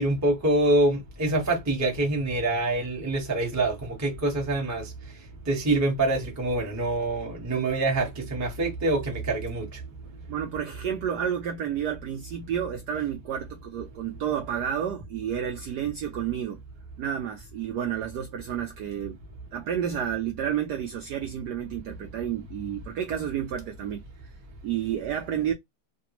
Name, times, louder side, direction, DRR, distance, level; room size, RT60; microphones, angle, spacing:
voice 1, 0.0-4.8 5.5-9.7, right 2 dB, 20° right, 0.5 m, -25 dB
voice 2, 10.3-16.6 17.0-19.2 19.5-24.3 24.6-25.5, right 9 dB, 80° right, 0.9 m, -30 dB
3.3 x 2.3 x 2.8 m
omnidirectional pair, 2.3 m